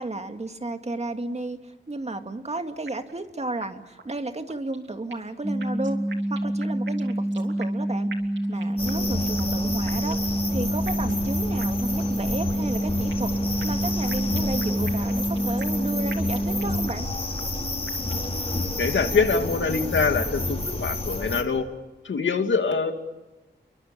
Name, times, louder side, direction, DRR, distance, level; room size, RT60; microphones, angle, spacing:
voice 1, 0.0-6.0 6.3-8.1 8.5-13.3 13.6-17.1, right 2 dB, 35° right, 6 dB, 2.2 m, -33 dB
sound 1, 2.9-3.3 3.6-3.7 4.0-4.1 4.5-5.3 5.6-7.8 8.1-9.1 9.4-9.5 9.9-10.4 10.9-11.3 11.6-11.7 12.0-12.1 12.5-13.3 13.6-15.8 16.1-17.1 17.4-17.5 17.9-18.4, right 5 dB, 80° right, 3.0 m, -43 dB
sound 2, 5.4-16.9, right 1 dB, ahead, 2.9 m, -27 dB
sound 3, 8.8-21.4, left 2 dB, 30° left, 4.7 m, -30 dB
voice 2, 18.8-21.7 22.0-22.9, left 4 dB, 85° left, 6 dB, 2.5 m, -24 dB
30.0 x 23.0 x 7.2 m, 1.1 s
wide cardioid pair, 80°, 19 cm